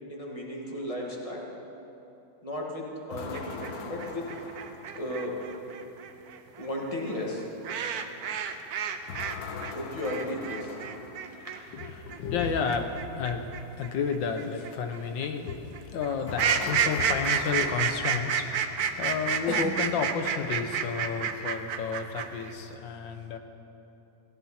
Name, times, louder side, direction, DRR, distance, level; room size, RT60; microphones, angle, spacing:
voice 1, 0.1-1.4 2.4-4.3 4.9-5.4 6.6-9.2 9.5-10.8 11.2-11.6, left 1 dB, 20° left, -2 dB, 2.2 m, -36 dB
sound 1, 3.1-5.4 9.1-11.6 16.3-18.9, left 6 dB, 60° left, 1.2 m, -41 dB
sound 2, 3.3-9.4 9.6-22.5, right 7 dB, 60° right, 1.2 m, -30 dB
voice 2, 11.7-23.4, left 5 dB, 80° left, 6 dB, 1.7 m, -31 dB
17.5 x 16.5 x 4.4 m, 2.9 s
omnidirectional pair, 2.0 m